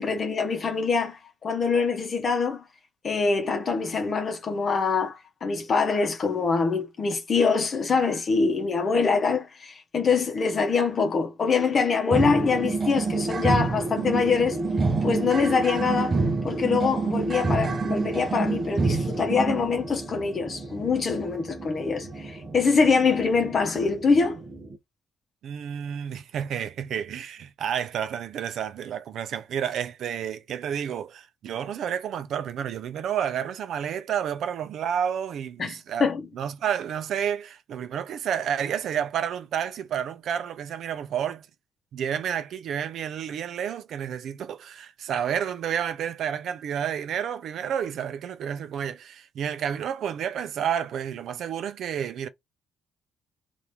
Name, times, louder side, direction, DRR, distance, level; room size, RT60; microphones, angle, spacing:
voice 1, 0.0-2.6 3.0-14.6 15.0-24.4 35.6-36.2, left 5 dB, 45° left, 0.8 m, -24 dB
sound 1, 12.1-24.8, right 3 dB, 35° right, 0.7 m, -28 dB
voice 2, 25.4-36.1 36.3-41.5 41.9-52.3, right 8 dB, 70° right, 0.5 m, -30 dB
2.9 x 2.5 x 3.3 m
cardioid pair, 90°, 0 cm